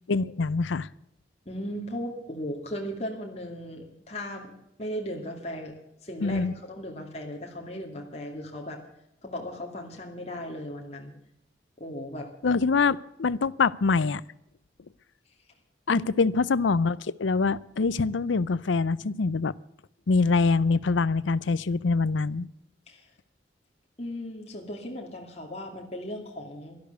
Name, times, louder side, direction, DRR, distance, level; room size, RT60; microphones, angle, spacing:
voice 1, 0.1-0.9 6.2-6.5 12.4-14.2 15.9-19.5 20.1-22.5, left 4 dB, 90° left, 20 dB, 0.6 m, -24 dB
voice 2, 1.5-4.5 4.8-5.7 6.0-8.8 9.2-11.1 11.8-12.3 15.9-16.1 22.9-23.1 24.0-26.8, equal, 35° left, 0 dB, 2.4 m, -37 dB
12.5 x 11.5 x 8.1 m, 0.80 s
head